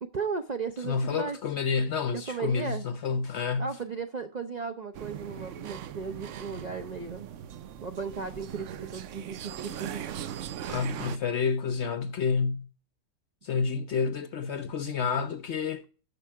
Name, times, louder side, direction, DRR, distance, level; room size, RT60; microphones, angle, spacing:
voice 1, 0.0-1.4 2.1-2.8 3.6-7.3 7.8-10.1, right 5 dB, 80° right, 0.3 m, -35 dB
voice 2, 0.8-3.7 10.7-12.7 13.4-15.8, left 5 dB, 60° left, 0.7 m, -29 dB
sound 1, 4.9-11.2, right 9 dB, 65° right, 0.8 m, -40 dB
12.5 x 5.4 x 4.5 m
omnidirectional pair, 1.7 m